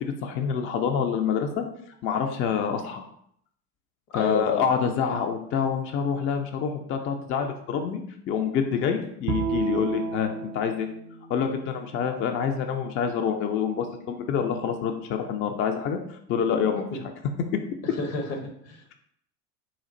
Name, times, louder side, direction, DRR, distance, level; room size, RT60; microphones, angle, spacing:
voice 1, 0.0-1.6 2.0-3.1 4.1-10.9 11.3-16.0 16.3-16.9, left 7 dB, 30° left, 5 dB, 0.4 m, -27 dB
voice 2, 4.1-4.7 17.8-18.9, left 2 dB, 65° left, 3 dB, 1.3 m, -31 dB
Bowed string instrument, 9.3-12.5, right 6 dB, 40° right, 0.4 m, -33 dB
4.3 x 2.4 x 3.7 m, 0.69 s
hypercardioid pair, 80°, 46 cm